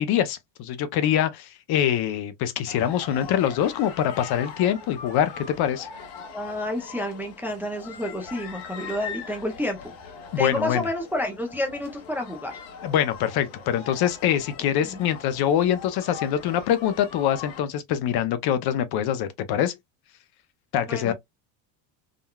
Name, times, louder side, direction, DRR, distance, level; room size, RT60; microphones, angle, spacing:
voice 1, 0.0-5.9 10.3-10.8 12.8-19.8 20.7-21.1, left 10 dB, 50° left, 0.6 m, -24 dB
sound 1, 2.7-17.6, left 6 dB, 70° left, 1.3 m, -41 dB
voice 2, 6.3-9.9 10.4-12.6 14.8-15.0 20.9-21.1, left 1 dB, 5° right, 0.4 m, -30 dB
3.7 x 2.2 x 2.2 m
supercardioid pair, 115°, 49 cm